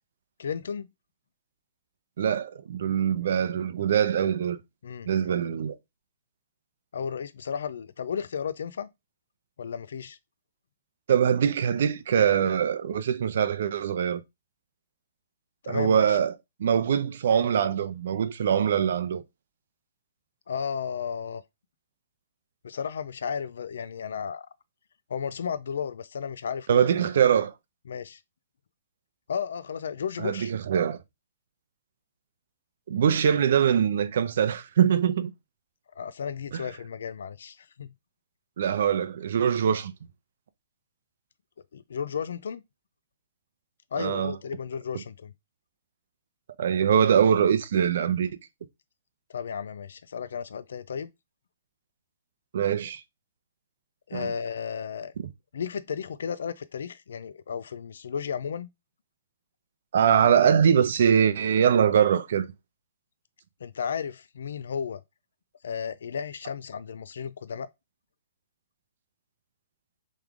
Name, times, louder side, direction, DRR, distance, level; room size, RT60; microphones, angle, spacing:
voice 1, 0.4-0.9 4.8-5.3 6.9-8.9 9.6-10.2 15.6-16.2 20.5-21.4 22.6-24.5 25.1-26.9 27.9-28.2 29.3-30.5 36.0-37.9 41.7-42.6 43.9-45.3 49.3-51.1 54.1-55.1 55.5-58.7 63.6-65.0 65.6-67.7, left 7 dB, 75° left, 0.3 m, -34 dB
voice 2, 2.2-4.6 5.1-5.7 11.1-14.2 15.7-16.3 16.6-19.2 26.7-27.5 30.2-31.0 32.9-35.3 36.5-36.6 38.6-39.9 44.0-44.3 46.6-48.3 52.5-53.0 54.1-54.3 55.2-55.3 59.9-62.5, right 8 dB, 60° right, 0.5 m, -23 dB
3.6 x 3.2 x 3.5 m
hypercardioid pair, 165°, 0 cm